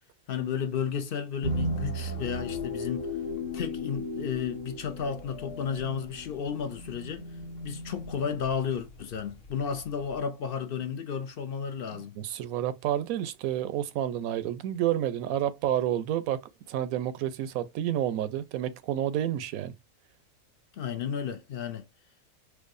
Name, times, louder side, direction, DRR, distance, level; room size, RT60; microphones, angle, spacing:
voice 1, 0.3-3.1 3.5-7.3 7.6-12.2 20.7-21.8, left 7 dB, 55° left, 0.6 m, -33 dB
sound 1, 1.4-10.2, left 1 dB, 85° left, 1.4 m, -36 dB
voice 2, 11.9-16.4 16.7-19.7, right 11 dB, 85° right, 1.0 m, -30 dB
4.6 x 2.3 x 2.5 m
omnidirectional pair, 1.4 m